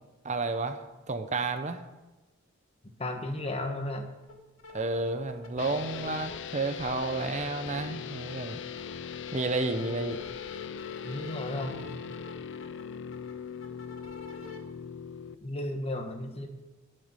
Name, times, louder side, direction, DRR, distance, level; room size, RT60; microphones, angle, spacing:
voice 1, 0.2-1.8 4.7-8.6 9.3-10.2, right 3 dB, 35° right, 9 dB, 0.8 m, -31 dB
voice 2, 3.0-4.1 11.0-12.2 15.4-16.5, left 1 dB, 30° left, 5 dB, 1.4 m, -34 dB
sound 1, 4.2-4.3 4.6-6.4 6.8-7.8 8.1-14.6, left 4 dB, 85° left, 2.5 m, -47 dB
sound 2, 5.6-15.3, left 7 dB, 60° left, 0.6 m, -40 dB
12.0 x 6.6 x 9.0 m, 1.1 s
head